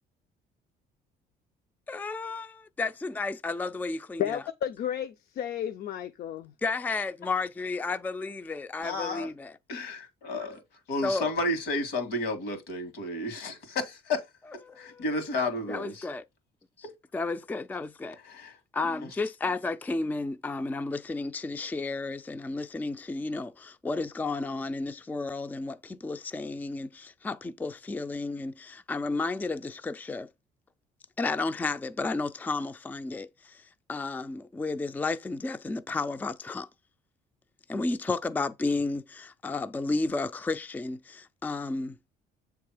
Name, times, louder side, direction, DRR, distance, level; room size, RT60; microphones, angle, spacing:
voice 1, 1.9-4.4 6.6-9.5 11.0-11.2 14.7-15.0 15.7-16.2 17.1-18.2 18.7-30.3 31.2-36.7 37.7-42.0, left 3 dB, 10° left, 0.4 m, -32 dB
voice 2, 4.2-6.5, left 10 dB, 65° left, 0.6 m, -32 dB
voice 3, 8.8-9.3 9.7-10.6 10.9-14.3 14.8-16.1 18.2-18.6 18.8-19.1, left 2 dB, 80° left, 2.1 m, -32 dB
7.5 x 3.4 x 4.9 m
cardioid pair, 110°, 17 cm